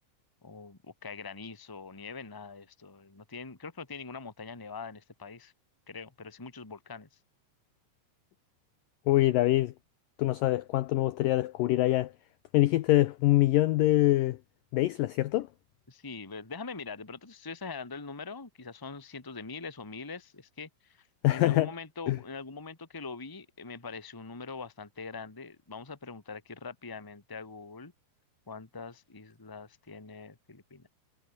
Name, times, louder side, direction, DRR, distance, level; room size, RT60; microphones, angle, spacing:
voice 1, 0.4-5.5 5.9-7.1 15.9-27.9 28.5-30.9, left 4 dB, 10° left, 1.2 m, -43 dB
voice 2, 9.1-9.7 10.2-12.1 12.5-14.4 14.7-15.5 21.2-21.7 22.1-22.2, left 16 dB, 85° left, 1.9 m, -24 dB
omnidirectional pair, 5.0 m